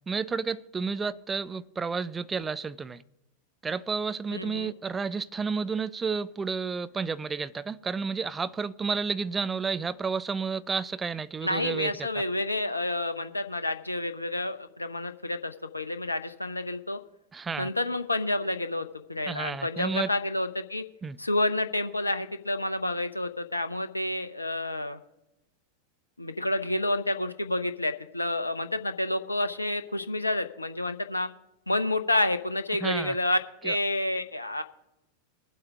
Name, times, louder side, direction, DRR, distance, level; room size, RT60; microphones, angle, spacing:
voice 1, 0.1-3.0 3.6-12.1 17.3-17.7 19.3-20.1 21.0-21.2 32.8-33.2 33.6-33.8, right 5 dB, 15° right, 0.5 m, -31 dB
voice 2, 4.3-4.7 11.4-17.0 17.6-20.8 21.2-25.0 26.2-31.3 31.7-34.6, left 1 dB, 85° left, 0.6 m, -29 dB
21.5 x 7.9 x 3.5 m
figure-of-eight pair, 90°, 0 cm